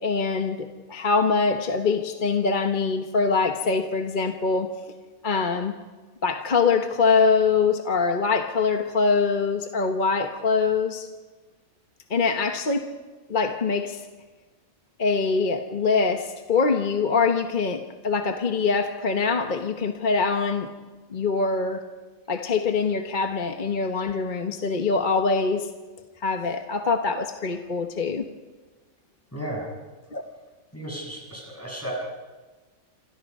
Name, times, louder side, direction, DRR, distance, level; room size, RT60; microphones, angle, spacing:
voice 1, 0.0-4.7 5.2-5.7 6.2-11.1 12.1-12.9 13.3-14.0 15.0-20.7 21.1-21.8 22.3-25.7 26.2-28.2 30.1-30.2, left 4 dB, 40° left, 6 dB, 1.2 m, -24 dB
voice 2, 29.3-29.7 30.7-31.9, equal, 10° left, -1 dB, 6.8 m, -34 dB
28.0 x 26.5 x 5.5 m, 1.3 s
omnidirectional pair, 1.5 m